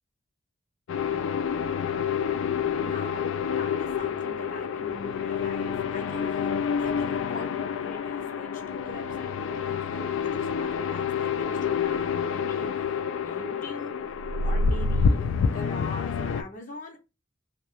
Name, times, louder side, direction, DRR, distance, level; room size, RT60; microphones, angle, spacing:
sound 1, 0.9-16.4, left 6 dB, 80° left, 0.3 m, -28 dB
voice 1, 2.5-6.5 6.8-17.0, left 2 dB, 45° left, 0.7 m, -42 dB
2.9 x 2.3 x 3.0 m
head